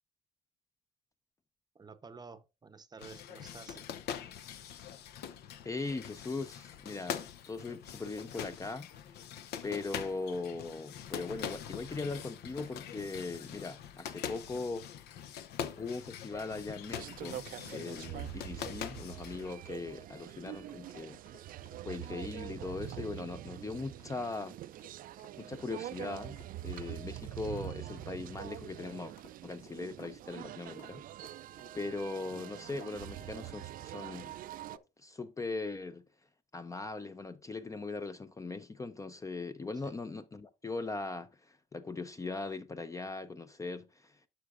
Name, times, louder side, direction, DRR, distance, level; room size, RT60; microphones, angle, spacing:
voice 1, 1.7-3.9 39.7-39.9, right 5 dB, 25° right, 0.8 m, -51 dB
sound 1, 3.0-19.5, left 9 dB, 75° left, 0.8 m, -43 dB
voice 2, 5.6-8.9 9.6-14.9 15.8-17.4 17.7-21.2 21.8-24.6 25.4-29.1 29.4-31.2 31.7-34.3 35.0-36.0 36.5-44.2, left 3 dB, 20° left, 0.5 m, -40 dB
sound 2, 16.8-34.8, right 13 dB, 55° right, 0.4 m, -45 dB
sound 3, 18.1-33.0 33.4-33.5 34.1-34.3 34.7-35.0, left 3 dB, 60° left, 2.6 m, -59 dB
11.5 x 6.2 x 2.5 m
cardioid pair, 110°, 17 cm